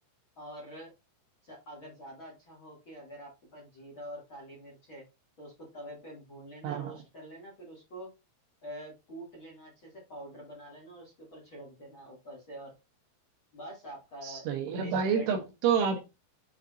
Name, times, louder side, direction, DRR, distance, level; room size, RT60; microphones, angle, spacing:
voice 1, 0.4-0.9 1.4-5.1 5.4-8.1 8.6-12.7 13.5-15.4, right 1 dB, 35° left, -3 dB, 2.1 m, -46 dB
voice 2, 14.2-16.1, right 6 dB, 75° right, 4 dB, 3.0 m, -29 dB
7.8 x 5.7 x 2.6 m, 0.24 s
omnidirectional pair, 6.0 m